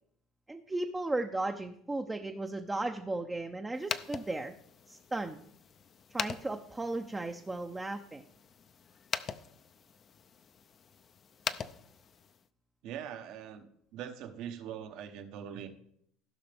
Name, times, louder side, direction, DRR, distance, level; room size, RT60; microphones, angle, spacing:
voice 1, 0.5-4.5 4.9-5.4 6.1-8.2, right 2 dB, 10° right, 4 dB, 0.5 m, -35 dB
sound 1, 3.7-12.5, left 7 dB, 35° left, 0.5 m, -42 dB
voice 2, 12.8-13.7 13.9-15.7, right 9 dB, 65° right, 7 dB, 1.0 m, -42 dB
16.0 x 5.7 x 3.5 m, 0.71 s
supercardioid pair, 120°, 0 cm